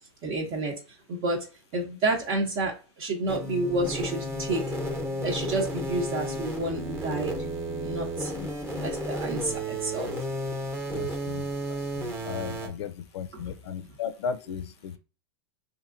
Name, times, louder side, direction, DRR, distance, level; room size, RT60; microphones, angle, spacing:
voice 1, 0.2-0.7 1.1-1.4 1.7-2.7 3.0-4.6 5.2-7.3 7.8-8.3 8.8-10.1 13.3-13.5, right 2 dB, 50° right, 0.8 m, -29 dB
sound 1, 3.3-12.7, right 1 dB, 15° right, 0.8 m, -33 dB
sound 2, 3.6-9.6, left 3 dB, 20° left, 0.3 m, -41 dB
voice 2, 10.9-11.4 12.0-15.0, left 7 dB, 85° left, 0.4 m, -35 dB
3.0 x 2.6 x 2.5 m
supercardioid pair, 130°, 14 cm